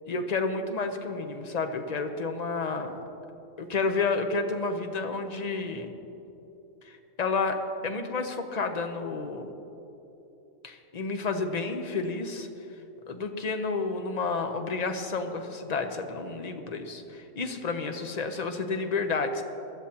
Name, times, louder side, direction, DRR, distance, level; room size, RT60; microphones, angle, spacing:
voice 1, 0.1-3.0 3.6-5.9 6.8-7.6 7.8-9.5 10.6-12.5 13.1-19.4, left 4 dB, 35° left, 6 dB, 0.8 m, -30 dB
21.0 x 13.0 x 2.9 m, 3.0 s
omnidirectional pair, 1.4 m